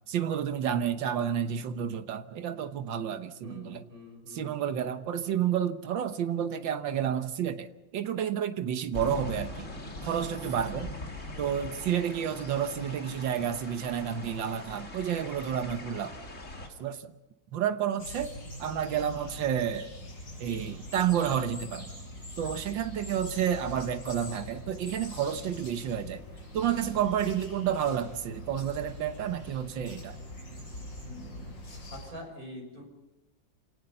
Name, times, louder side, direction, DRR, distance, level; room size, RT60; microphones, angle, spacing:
voice 1, 0.1-3.8 4.3-10.9 11.4-16.2 16.8-17.1 17.5-18.3 18.6-19.9 20.4-21.9 22.4-26.2 26.5-30.2, right 9 dB, 85° right, 1.8 m, -30 dB
voice 2, 3.4-4.6 31.9-32.9, left 1 dB, 50° right, 6.8 m, -44 dB
sound 1, 8.9-16.7, left 2 dB, 40° left, 3.1 m, -41 dB
sound 2, 18.0-32.1, left 1 dB, 65° left, 5.8 m, -43 dB
28.0 x 18.0 x 5.5 m
omnidirectional pair, 2.0 m